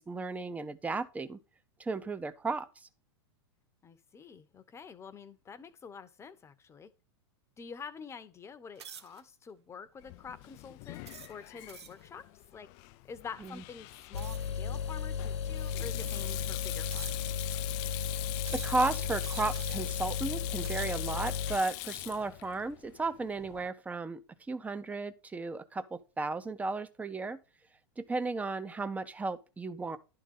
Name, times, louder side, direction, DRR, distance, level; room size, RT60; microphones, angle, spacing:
voice 1, 0.0-1.4 1.8-2.9 13.4-13.6 18.5-24.2 24.5-27.4 28.0-30.0, right 3 dB, 10° right, 0.7 m, -34 dB
voice 2, 3.8-6.9 7.6-12.2 12.5-12.7 13.0-17.4, left 6 dB, 20° left, 0.9 m, -47 dB
sound 1, 8.8-9.2 9.9-10.1 11.0-12.1 14.2-14.6 15.4-15.5 16.0-16.4 16.9-17.5 18.4-18.9 19.2-19.9 20.4-21.0, right 8 dB, 80° right, 1.0 m, -48 dB
Sink (filling or washing), 10.0-23.7, left 19 dB, 45° left, 0.4 m, -43 dB
sound 2, 14.1-21.6, left 6 dB, 85° left, 1.1 m, -35 dB
11.0 x 3.9 x 5.2 m
hypercardioid pair, 110°, 14 cm